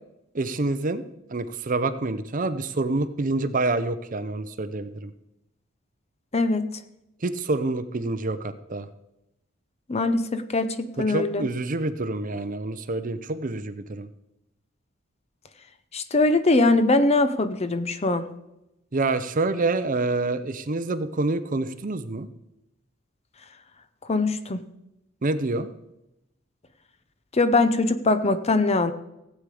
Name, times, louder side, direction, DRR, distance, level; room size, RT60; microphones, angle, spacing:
voice 1, 0.3-1.0 1.3-5.1 7.2-8.9 11.0-14.1 18.9-22.3 25.2-25.7, right 2 dB, 40° right, 13 dB, 0.6 m, -27 dB
voice 2, 6.3-6.7 9.9-11.5 15.9-18.3 24.1-24.6 27.3-28.9, left 2 dB, 30° left, 11 dB, 0.7 m, -22 dB
16.0 x 8.4 x 4.9 m, 0.89 s
head